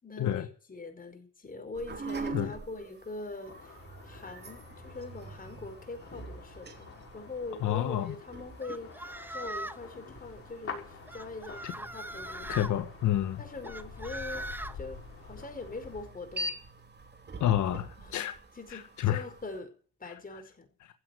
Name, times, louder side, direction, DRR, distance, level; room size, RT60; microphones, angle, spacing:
voice 1, 0.0-12.8 13.4-16.5 18.0-19.7 20.0-20.7, left 3 dB, 30° left, 4.9 m, -43 dB
sound 1, 1.7-19.6, right 2 dB, 35° right, 3.0 m, -45 dB
sound 2, 3.5-16.1, left 5 dB, 45° left, 5.7 m, -48 dB
voice 2, 7.6-8.1 11.6-11.7 12.5-13.4 17.4-18.3 18.7-19.2, left 12 dB, 75° left, 1.5 m, -29 dB
sound 3, 8.6-9.9 11.1-12.7 13.6-14.8, right 1 dB, 5° right, 1.2 m, -40 dB
16.0 x 8.1 x 8.4 m
cardioid pair, 90°, 30 cm